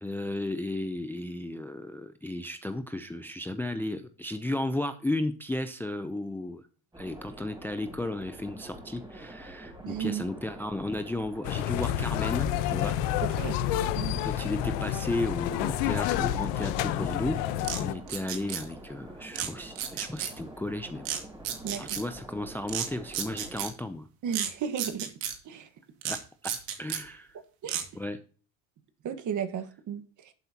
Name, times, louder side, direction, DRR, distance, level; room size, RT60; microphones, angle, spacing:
voice 1, 0.0-6.6 7.0-13.0 14.2-21.2 21.8-24.1 26.0-26.5 26.8-27.4 27.9-28.2, left 1 dB, 5° left, 0.6 m, -34 dB
sound 1, 6.9-23.7, right 1 dB, 10° right, 3.5 m, -46 dB
voice 2, 9.8-10.2 13.4-13.6 14.0-14.2 21.6-22.0 24.2-25.1 25.4-25.7 27.6-27.8 29.0-30.0, right 8 dB, 40° right, 1.6 m, -33 dB
sound 2, 11.4-17.9, left 12 dB, 70° left, 1.0 m, -29 dB
sound 3, 17.6-17.8 18.1-18.6 19.3-19.5 19.8-20.3 21.0-21.2 21.4-22.0 22.7-22.9 23.1-23.7 24.3-24.5 24.8-25.3 26.0-26.2 26.4-27.0 27.7-27.8, right 10 dB, 75° right, 2.4 m, -32 dB
11.5 x 7.9 x 2.9 m
supercardioid pair, 110°, 45 cm